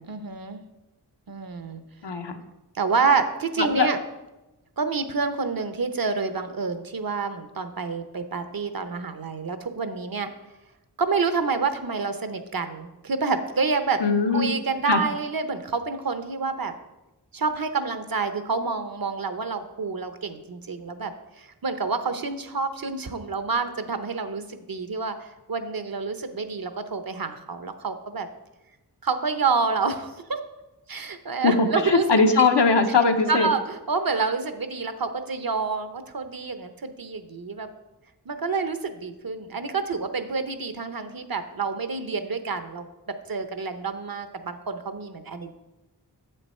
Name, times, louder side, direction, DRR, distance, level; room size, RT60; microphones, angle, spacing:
voice 1, 0.0-0.6 1.3-1.8 2.7-4.0 4.8-10.3 11.0-14.0 14.3-16.7 17.3-28.3 29.0-30.4 30.9-32.1 33.3-37.7 38.3-42.8 43.3-45.5, right 4 dB, 55° right, 9 dB, 0.7 m, -28 dB
voice 2, 2.0-2.4 3.6-3.9 14.0-14.5 14.9-15.0 31.4-33.5, left 4 dB, 75° left, 6 dB, 0.9 m, -20 dB
7.6 x 6.6 x 4.3 m, 1.0 s
wide cardioid pair, 50°, 42 cm